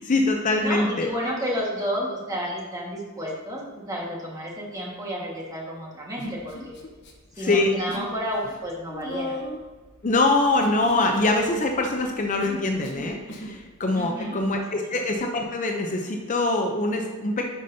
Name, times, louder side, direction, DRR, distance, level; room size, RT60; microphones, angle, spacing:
voice 1, 0.0-1.1 7.4-7.7 10.0-17.5, left 2 dB, 35° left, 3 dB, 0.6 m, -24 dB
voice 2, 0.6-6.8 7.4-9.3 13.9-14.4, equal, 15° right, -3 dB, 1.6 m, -31 dB
Human voice, 6.2-7.1 7.4-8.1 8.4-13.6, left 1 dB, 55° left, 1.0 m, -37 dB
11.0 x 5.1 x 2.7 m, 1.3 s
head